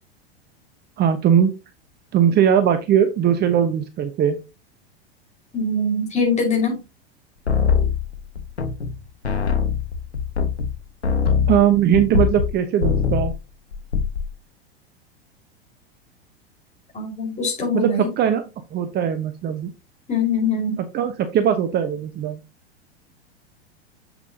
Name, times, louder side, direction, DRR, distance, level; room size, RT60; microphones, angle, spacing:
voice 1, 1.0-1.6 2.1-4.4 11.5-13.3 17.7-18.4 18.7-19.7 20.9-22.4, right 9 dB, 30° right, 9 dB, 0.9 m, -19 dB
voice 2, 5.5-6.8 16.9-18.1 20.1-20.8, left 3 dB, 20° left, 1 dB, 4.5 m, -22 dB
sound 1, 7.5-9.0 9.2-12.5 12.8-13.4 13.7-14.3, left 6 dB, 85° left, 1.2 m, -22 dB
7.6 x 6.9 x 2.7 m, 0.26 s
figure-of-eight pair, 90°, 32 cm